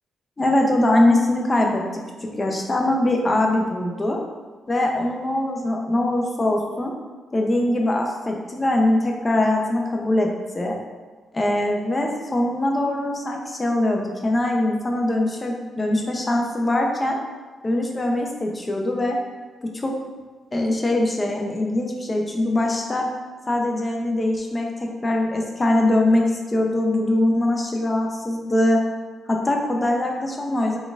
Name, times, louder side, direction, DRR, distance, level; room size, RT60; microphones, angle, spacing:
voice 1, 0.4-1.8 2.2-4.2 4.7-6.9 7.3-10.3 10.5-10.8 11.3-17.2 17.6-19.2 19.6-19.9 20.5-23.1 23.5-28.8 29.3-30.8, left 1 dB, 25° left, 1 dB, 0.6 m, -22 dB
4.0 x 3.6 x 2.4 m, 1.4 s
cardioid pair, 90°, 0 cm